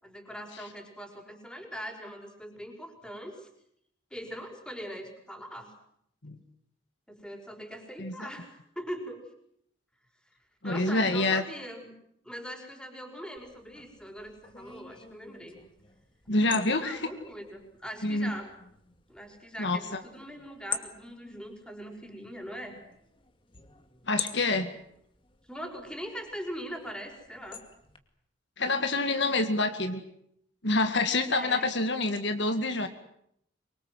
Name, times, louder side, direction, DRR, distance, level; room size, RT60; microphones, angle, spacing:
voice 1, 0.0-3.5 4.1-5.7 7.1-9.2 10.6-11.9 12.2-15.6 16.5-18.5 19.1-22.8 25.5-27.6 31.3-31.7, equal, 5° left, 4 dB, 5.3 m, -41 dB
voice 2, 10.6-11.4 16.3-17.1 18.0-18.3 19.6-20.0 24.1-24.7 28.6-30.0 30.6-32.9, left 2 dB, 60° left, 7 dB, 2.2 m, -27 dB
sound 1, 13.4-28.0, left 6 dB, 25° left, 2.4 m, -45 dB
25.0 x 24.0 x 7.8 m, 0.72 s
head